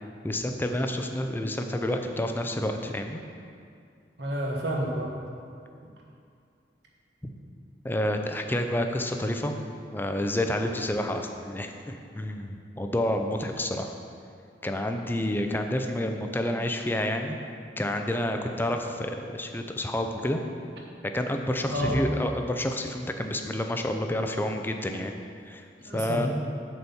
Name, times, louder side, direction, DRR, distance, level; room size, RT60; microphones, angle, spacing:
voice 1, 0.2-3.2 7.8-9.5 9.9-13.9 14.6-17.3 17.8-20.4 21.1-25.1 25.4-25.6 25.9-26.3, left 1 dB, 10° left, 4 dB, 0.5 m, -29 dB
voice 2, 4.2-5.1 21.7-22.4 25.8-26.3, equal, 65° right, -2 dB, 1.3 m, -29 dB
7.8 x 4.2 x 7.0 m, 2.3 s
head